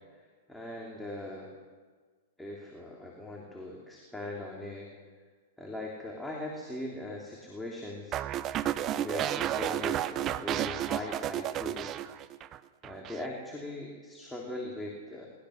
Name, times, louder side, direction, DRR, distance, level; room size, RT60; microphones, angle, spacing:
voice 1, 0.5-1.5 2.4-4.9 5.6-8.2 8.8-12.0 12.8-15.3, left 1 dB, 5° left, -2 dB, 3.2 m, -40 dB
sound 1, 8.1-12.6 12.8-13.3, right 12 dB, 30° right, 0.8 m, -32 dB
21.5 x 20.0 x 6.5 m, 1.5 s
hypercardioid pair, 120°, 0 cm